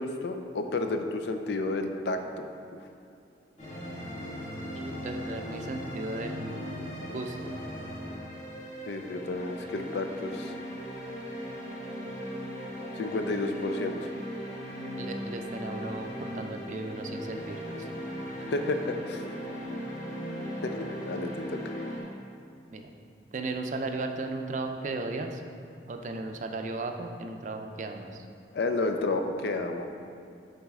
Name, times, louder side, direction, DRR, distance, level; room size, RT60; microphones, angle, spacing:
voice 1, 0.0-2.5 8.9-10.5 13.0-14.0 18.5-19.2 20.6-20.8 21.1-21.7 28.5-29.9, left 2 dB, 70° left, 6 dB, 0.4 m, -31 dB
sound 1, 3.6-22.0, equal, 45° left, 1.4 m, -38 dB
voice 2, 4.7-7.5 15.0-17.9 22.7-22.9 23.3-25.4 25.9-28.2, right 2 dB, 45° right, 5 dB, 0.4 m, -36 dB
7.2 x 4.1 x 3.6 m, 2.5 s
head